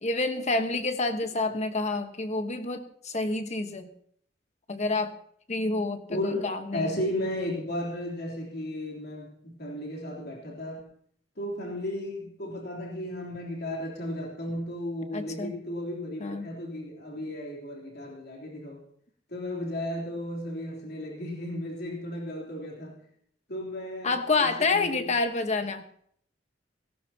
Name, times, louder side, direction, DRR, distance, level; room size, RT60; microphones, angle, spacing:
voice 1, 0.0-3.9 4.7-5.1 5.5-6.9 15.1-15.5 16.2-16.5 24.0-25.8, left 3 dB, 40° left, 7 dB, 1.3 m, -28 dB
voice 2, 6.1-10.9 11.4-18.8 19.3-23.0 23.5-25.1, left 1 dB, 60° left, -1 dB, 3.4 m, -34 dB
17.0 x 17.0 x 2.9 m, 0.63 s
head